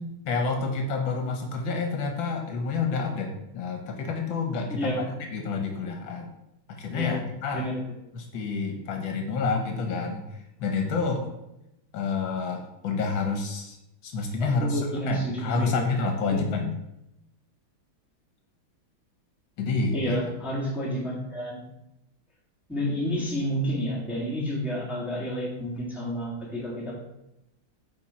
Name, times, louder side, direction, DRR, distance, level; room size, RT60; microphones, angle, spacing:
voice 1, 0.3-5.0 5.3-6.3 6.7-7.7 8.1-11.3 11.9-13.8 14.0-16.7 19.6-20.2, left 4 dB, 70° left, 3 dB, 1.7 m, -29 dB
voice 2, 4.7-5.0 6.9-7.2 7.5-7.7 14.4-15.7 19.9-21.6 22.7-26.9, equal, ahead, -4 dB, 1.6 m, -30 dB
8.8 x 4.4 x 4.3 m, 0.87 s
omnidirectional pair, 2.3 m